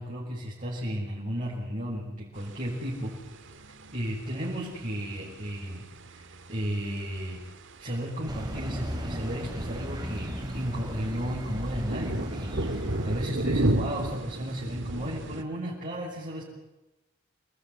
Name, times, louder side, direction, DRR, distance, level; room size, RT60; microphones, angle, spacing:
voice 1, 0.0-3.6 3.9-5.8 6.1-7.4 7.8-16.4, equal, 35° right, -6 dB, 6.4 m, -34 dB
sound 1, 2.4-15.4, right 1 dB, 60° right, 2.0 m, -36 dB
sound 2, 8.3-13.3, equal, 20° right, 4.1 m, -36 dB
29.0 x 20.0 x 9.8 m, 1.0 s
head